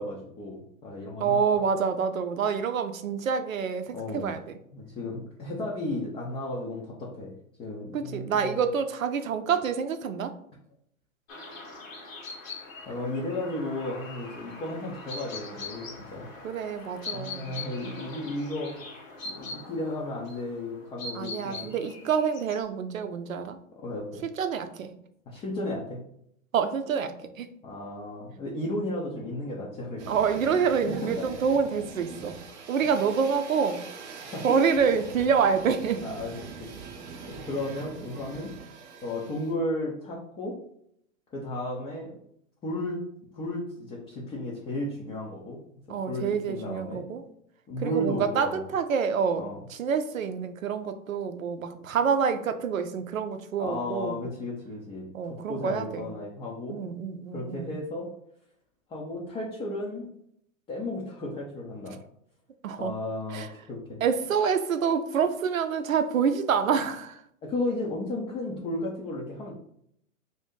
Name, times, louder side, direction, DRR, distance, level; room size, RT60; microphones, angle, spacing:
voice 1, 0.0-1.4 3.9-4.3 4.7-7.3 7.6-8.6 12.9-16.3 17.1-18.7 19.2-21.7 23.8-24.2 25.3-26.0 27.6-30.0 31.2-31.3 32.8-32.9 34.2-34.4 36.0-36.7 37.3-38.5 39.0-40.5 41.3-42.2 42.6-43.0 43.3-45.6 46.1-47.0 47.7-48.7 49.3-49.6 53.6-56.8 57.3-58.1 58.9-60.1 60.7-62.0 62.8-64.0 67.4-69.5, left 1 dB, 15° left, -4 dB, 0.4 m, -34 dB
voice 2, 1.2-4.6 7.9-10.3 16.4-17.5 21.1-23.6 24.3-24.9 26.5-27.5 30.1-32.4 32.7-33.8 34.4-36.0 45.9-47.2 47.8-54.2 55.1-56.1 56.7-57.7 62.6-63.0 63.3-63.5 64.0-67.2, right 6 dB, 90° right, 8 dB, 0.6 m, -27 dB
sound 1, 11.3-22.6, left 3 dB, 80° left, 1.1 m, -42 dB
sound 2, 30.0-39.5, right 5 dB, 30° right, 0.6 m, -43 dB
2.7 x 2.7 x 3.6 m, 0.70 s
hypercardioid pair, 115°, 39 cm